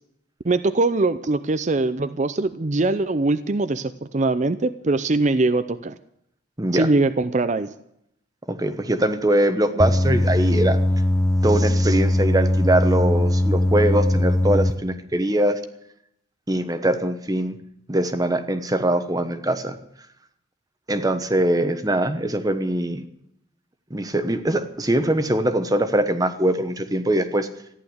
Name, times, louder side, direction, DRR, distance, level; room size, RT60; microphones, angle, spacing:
voice 1, 0.4-5.9 6.7-7.7, right 2 dB, 40° right, 11 dB, 0.6 m, -22 dB
voice 2, 8.5-10.8 11.4-15.6 16.5-17.6 17.9-19.8 20.9-23.1 23.9-27.5, right 1 dB, 20° right, 9 dB, 1.1 m, -22 dB
sound 1, 9.8-14.7, left 1 dB, 15° left, 0.7 m, -20 dB
15.0 x 11.0 x 7.9 m, 0.75 s
head